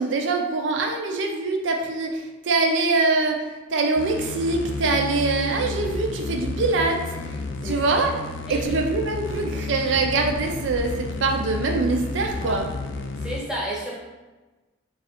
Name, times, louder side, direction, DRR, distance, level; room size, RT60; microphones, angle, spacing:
voice 1, 0.0-3.4 3.7-7.2 7.6-8.2 8.5-12.7, right 3 dB, 70° right, 3 dB, 0.5 m, -24 dB
sound 1, 4.0-13.4, left 3 dB, 70° left, 0.4 m, -31 dB
voice 2, 7.6-8.0 8.5-8.7 12.2-12.6 13.2-14.0, right 1 dB, 5° right, -5 dB, 0.9 m, -32 dB
4.0 x 2.4 x 4.2 m, 1.2 s
head